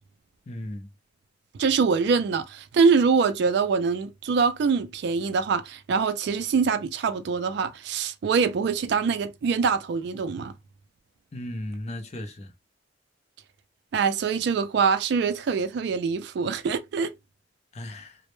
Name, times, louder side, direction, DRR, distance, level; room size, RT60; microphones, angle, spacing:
voice 1, 0.5-0.9 11.3-12.5 17.7-18.2, left 1 dB, 35° left, 0.4 m, -36 dB
voice 2, 1.6-10.5 13.9-17.1, right 5 dB, 60° right, 0.3 m, -24 dB
2.1 x 2.0 x 3.0 m
head